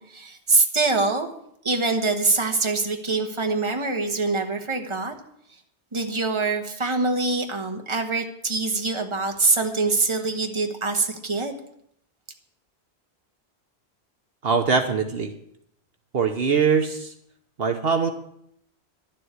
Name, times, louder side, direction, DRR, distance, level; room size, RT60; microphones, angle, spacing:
voice 1, 0.1-1.3 1.6-5.1 5.9-11.5, right 3 dB, 25° right, 4 dB, 1.4 m, -24 dB
voice 2, 14.4-15.3 16.1-17.1 17.6-18.1, right 5 dB, 60° right, 6 dB, 1.3 m, -22 dB
11.5 x 7.6 x 9.6 m, 0.72 s
omnidirectional pair, 1.1 m